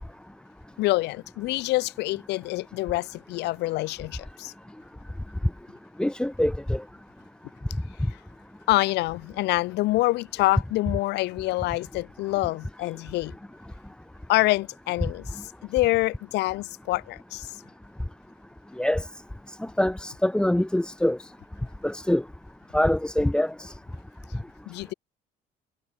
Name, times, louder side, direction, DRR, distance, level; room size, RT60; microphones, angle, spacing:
voice 1, 0.8-4.5 8.7-13.3 14.3-15.3 15.6-17.5 24.7-24.9, left 19 dB, 85° left, 7.7 m, -26 dB
voice 2, 6.0-6.8 18.8-19.1 19.6-21.2 21.8-22.2 22.7-23.7, left 1 dB, 5° left, 1.1 m, -24 dB
cardioid pair, 110°, 17 cm